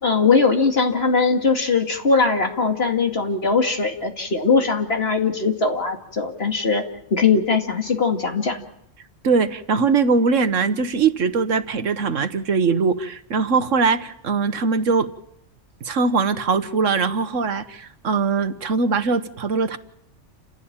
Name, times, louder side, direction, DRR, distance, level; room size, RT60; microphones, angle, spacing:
voice 1, 0.0-6.8 7.1-8.6, left 4 dB, 55° left, 3 dB, 2.6 m, -20 dB
voice 2, 9.2-15.1 15.8-19.8, right 4 dB, 90° right, 10 dB, 1.6 m, -21 dB
29.0 x 16.0 x 8.9 m, 0.78 s
omnidirectional pair, 1.3 m